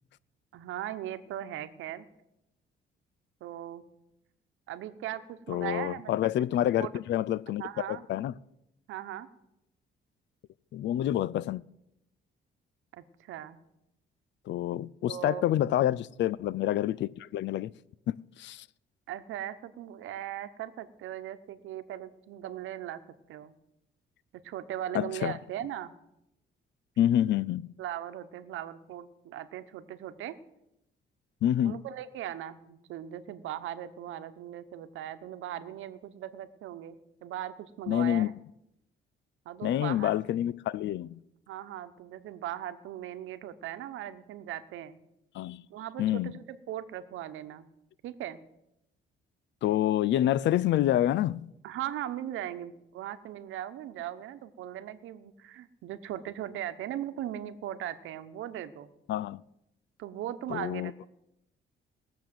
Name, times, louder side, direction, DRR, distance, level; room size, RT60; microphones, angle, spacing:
voice 1, 0.5-2.1 3.4-3.8 4.7-6.3 6.8-6.9 7.6-8.0 8.9-9.3 12.9-13.6 15.1-15.4 19.1-23.0 23.3-23.5 24.3-25.9 27.8-30.3 31.6-37.0 37.2-38.3 39.4-40.2 41.5-45.0 45.7-47.7 48.0-48.4 51.6-58.9 60.0-61.1, right 11 dB, 85° right, 1.0 m, -39 dB
voice 2, 5.5-7.6 7.9-8.3 10.7-11.6 14.5-17.7 18.1-18.7 24.9-25.4 27.0-27.7 31.4-31.8 37.9-38.3 39.6-41.2 45.3-45.6 46.0-46.3 49.6-51.5 59.1-59.4 60.5-60.9, left 12 dB, 65° left, 0.4 m, -27 dB
19.5 x 7.0 x 7.7 m
cardioid pair, 90°, 20 cm